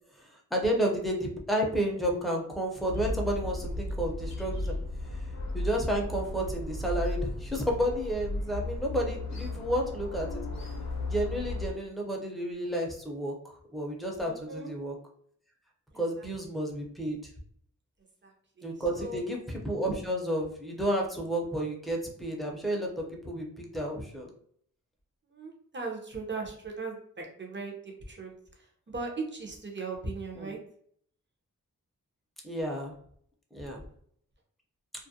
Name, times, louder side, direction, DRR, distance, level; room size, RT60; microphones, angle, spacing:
voice 1, 0.2-4.7 5.1-10.4 11.1-13.3 13.7-14.9 15.9-17.2 18.6-24.3 30.3-30.5 32.4-32.9 33.5-33.8, equal, ahead, 0 dB, 0.6 m, -31 dB
sound 1, 2.9-11.7, left 1 dB, 60° left, 0.6 m, -35 dB
voice 2, 14.2-14.7 15.9-16.3 18.2-18.3 18.6-19.2 25.3-28.3 28.9-30.6, right 3 dB, 35° right, 1 dB, 0.7 m, -38 dB
2.4 x 2.1 x 2.7 m, 0.63 s
cardioid pair, 65°, 32 cm